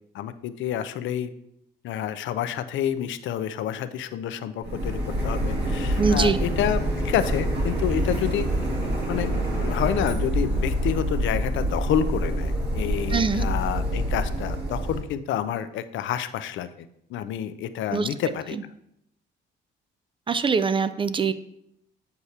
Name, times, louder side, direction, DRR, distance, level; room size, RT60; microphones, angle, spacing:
voice 1, 0.1-1.3 1.8-8.5 9.1-18.6, left 10 dB, 75° left, 12 dB, 0.4 m, -29 dB
Printer, 4.6-15.0, equal, 55° right, 2.3 m, -26 dB
voice 2, 6.0-6.4 13.1-13.4 17.9-18.1 20.3-21.3, right 5 dB, 25° right, 13 dB, 0.3 m, -23 dB
8.0 x 4.7 x 2.8 m, 0.76 s
cardioid pair, 90°, 20 cm